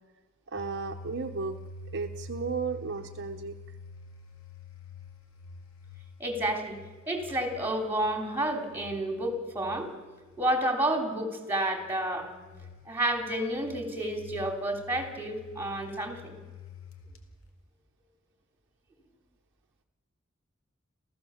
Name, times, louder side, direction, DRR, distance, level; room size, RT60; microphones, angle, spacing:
voice 1, 0.5-1.6 1.9-3.6, right 4 dB, 60° right, 5 dB, 0.9 m, -34 dB
sound 1, 0.6-10.6 11.7-17.3, left 3 dB, 85° left, 2.3 m, -48 dB
voice 2, 6.2-6.8 7.0-9.9 10.4-12.3 12.8-16.3, right 1 dB, 10° right, 3 dB, 3.3 m, -30 dB
28.5 x 15.0 x 7.2 m, 1.3 s
head